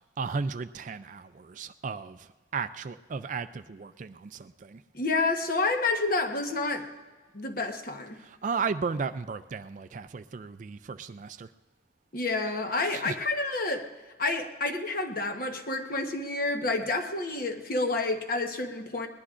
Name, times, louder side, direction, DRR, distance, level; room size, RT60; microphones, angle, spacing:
voice 1, 0.2-4.8 8.2-11.5 12.9-13.2, right 5 dB, 40° right, 12 dB, 0.3 m, -35 dB
voice 2, 4.9-6.9 7.3-8.2 12.1-13.9 14.2-19.1, left 3 dB, 45° left, 4 dB, 1.1 m, -29 dB
21.0 x 20.0 x 2.5 m, 1.3 s
head